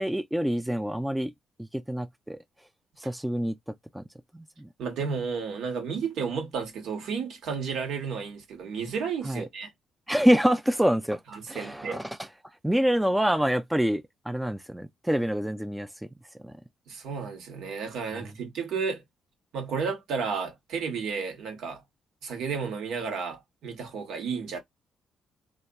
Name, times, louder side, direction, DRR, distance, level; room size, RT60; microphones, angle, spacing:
voice 1, 0.0-1.3 1.6-2.4 3.0-3.6 3.9-4.0 4.3-4.7 9.2-9.4 10.1-11.2 11.5-12.2 12.6-15.9 16.4-16.5 18.1-18.3, equal, 5° right, 0.3 m, -26 dB
voice 2, 4.8-9.7 11.3-12.0 16.9-19.0 19.5-21.8 22.2-24.6, right 5 dB, 75° right, 1.0 m, -32 dB
2.8 x 2.4 x 2.2 m
cardioid pair, 90°, 0 cm